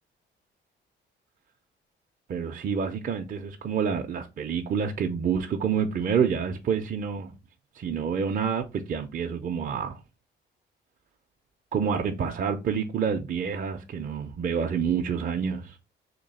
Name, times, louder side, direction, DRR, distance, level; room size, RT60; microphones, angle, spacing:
voice 1, 2.3-7.4 7.7-10.0 11.7-15.8, right 7 dB, 45° right, 0.5 m, -28 dB
3.1 x 2.9 x 4.0 m
cardioid pair, 90°, 20 cm